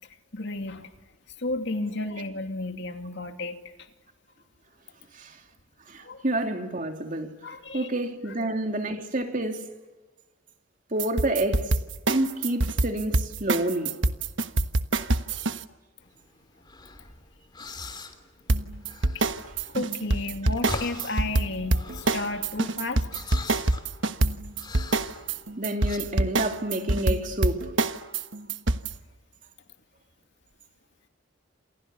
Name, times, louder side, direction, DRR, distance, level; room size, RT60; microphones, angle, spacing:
voice 1, 0.3-0.9 1.4-3.6 6.0-6.2 7.4-7.9 19.1-19.2 19.7-23.2, left 2 dB, 60° left, 2.6 m, -32 dB
voice 2, 5.9-9.6 10.9-11.7 12.1-13.9 25.6-27.7, right 1 dB, 40° right, 2.9 m, -29 dB
sound 1, 11.0-15.6 18.5-28.9, right 2 dB, 65° right, 1.3 m, -25 dB
sound 2, 16.0-26.0, left 2 dB, 20° left, 3.2 m, -42 dB
29.5 x 28.0 x 7.0 m
head